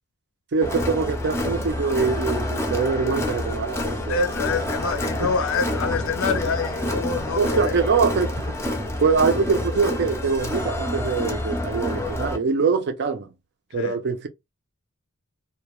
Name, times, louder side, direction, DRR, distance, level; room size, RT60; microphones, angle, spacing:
voice 1, 0.5-4.1 5.2-5.3 7.4-8.5 9.0-13.3 13.7-14.3, right 5 dB, 50° right, 0.5 m, -23 dB
Crowd, 0.6-12.4, left 1 dB, 10° left, 0.5 m, -28 dB
voice 2, 4.1-7.7 13.7-14.0, left 4 dB, 65° left, 0.5 m, -26 dB
2.2 x 2.2 x 2.9 m
head